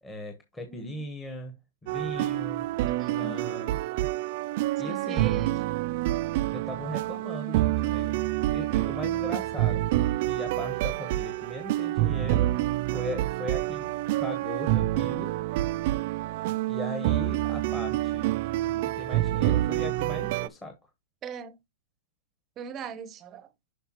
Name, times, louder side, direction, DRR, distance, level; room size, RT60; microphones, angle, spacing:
voice 1, 0.0-2.7 3.1-3.8 4.8-5.4 6.4-9.9 10.2-12.6 12.9-13.9 14.2-15.4 16.7-18.4 18.8-20.8, left 1 dB, 10° left, 1.1 m, -38 dB
voice 2, 0.7-1.0 2.9-3.5 4.8-5.8 21.2-21.6 22.6-23.5, right 5 dB, 20° right, 0.8 m, -39 dB
sound 1, 1.9-20.5, right 16 dB, 45° right, 0.3 m, -27 dB
7.8 x 5.7 x 3.0 m
hypercardioid pair, 160°, 0 cm